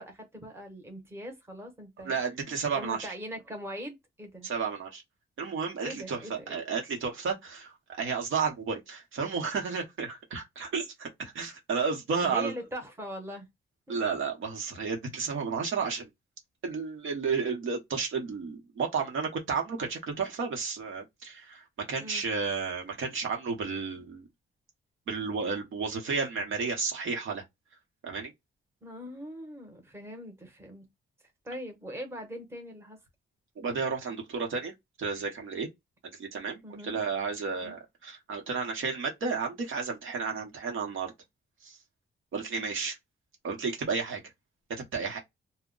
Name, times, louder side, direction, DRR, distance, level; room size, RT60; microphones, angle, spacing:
voice 1, 0.0-2.2 2.7-4.5 5.8-6.6 12.2-13.5 13.9-14.0 22.0-22.3 28.8-30.9 31.4-33.0 36.6-37.0 37.5-37.8, equal, 10° right, 0.9 m, -41 dB
voice 2, 2.0-3.1 4.4-5.0 5.4-12.5 13.9-16.1 16.6-24.3 25.1-27.4 28.0-28.3 33.6-35.7 36.2-41.1 41.6-41.8 42.3-43.0 43.4-44.2 44.7-45.2, right 5 dB, 70° right, 0.9 m, -32 dB
2.2 x 2.1 x 3.7 m
wide cardioid pair, 130°, 21 cm